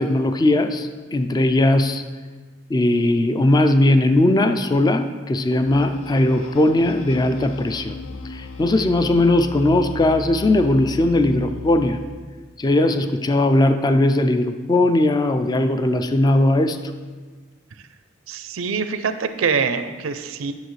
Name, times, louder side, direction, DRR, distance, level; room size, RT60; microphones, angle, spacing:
voice 1, 0.0-2.0 2.7-7.9 8.3-12.0 12.6-16.8, left 1 dB, 20° left, 8 dB, 0.3 m, -18 dB
sound 1, 5.7-12.2, left 3 dB, 90° left, 0.5 m, -36 dB
voice 2, 18.3-20.5, right 5 dB, 80° right, 10 dB, 0.5 m, -24 dB
10.5 x 6.7 x 3.2 m, 1.5 s
head